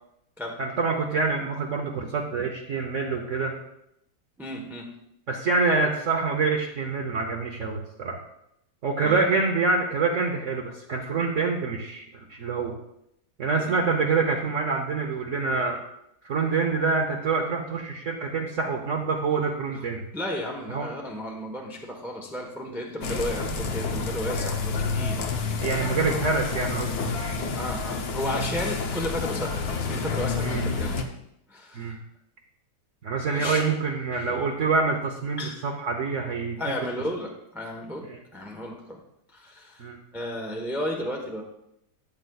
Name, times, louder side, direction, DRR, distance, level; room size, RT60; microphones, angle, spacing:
voice 1, 0.6-3.5 5.3-8.2 8.8-12.8 13.4-15.8 16.2-20.1 20.7-20.9 25.6-27.6 30.4-30.7 31.7-32.0 33.0-36.6 38.1-38.2 39.8-40.0, right 4 dB, 55° right, 1 dB, 1.0 m, -26 dB
voice 2, 4.4-4.9 9.0-9.2 13.5-13.7 20.1-25.8 27.5-29.6 29.9-31.0 31.5-31.9 33.3-33.7 34.1-34.4 35.4-35.6 36.6-39.0 39.3-39.8 40.1-41.4, left 1 dB, ahead, 0 dB, 0.8 m, -33 dB
sound 1, 23.0-31.0, left 4 dB, 65° left, 1.3 m, -29 dB
13.5 x 8.0 x 2.4 m, 0.79 s
omnidirectional pair, 1.8 m